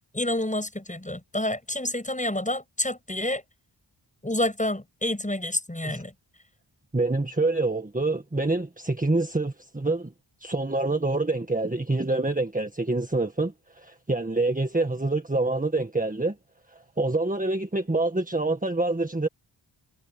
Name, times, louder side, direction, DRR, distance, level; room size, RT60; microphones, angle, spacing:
voice 1, 0.1-3.4 4.2-6.1, left 1 dB, 15° left, 7.6 m, -28 dB
voice 2, 6.9-10.1 10.4-16.4 16.7-19.3, right 2 dB, 15° right, 1.7 m, -26 dB
wide cardioid pair, 75°, 48 cm